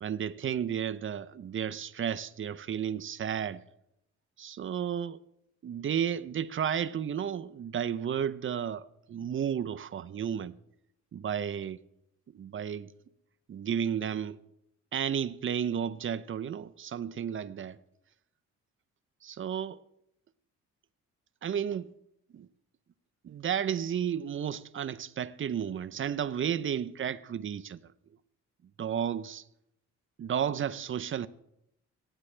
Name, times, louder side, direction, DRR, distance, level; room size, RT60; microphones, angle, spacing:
voice 1, 0.0-3.6 4.4-5.2 5.6-10.6 11.1-11.8 12.3-12.9 13.5-14.4 14.9-17.8 19.2-19.8 21.4-21.9 22.3-22.5 23.2-27.8 28.8-29.4 30.2-31.3, right 8 dB, 40° right, 0.7 m, -32 dB
23.0 x 10.0 x 3.3 m
cardioid pair, 90°, 30 cm